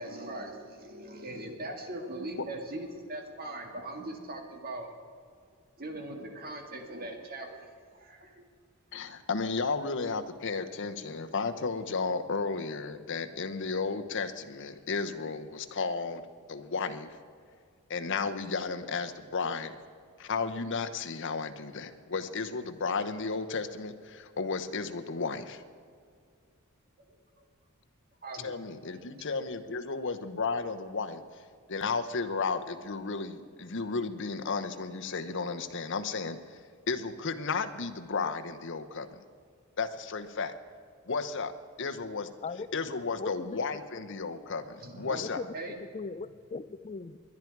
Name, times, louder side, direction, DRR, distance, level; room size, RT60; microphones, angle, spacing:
voice 1, 0.0-4.9 5.8-8.4 28.2-28.5 44.8-45.8, right 1 dB, 45° right, 3 dB, 1.8 m, -40 dB
voice 2, 8.9-16.2 16.5-17.1 17.9-19.7 20.2-25.6 28.4-31.2 31.7-36.4 36.9-39.1 39.8-40.5 41.1-41.5 41.8-42.3 42.7-45.4, left 4 dB, 55° left, 8 dB, 0.9 m, -33 dB
voice 3, 43.2-43.6 45.2-47.2, left 4 dB, 30° left, 13 dB, 0.4 m, -39 dB
21.5 x 10.5 x 4.7 m, 2.1 s
head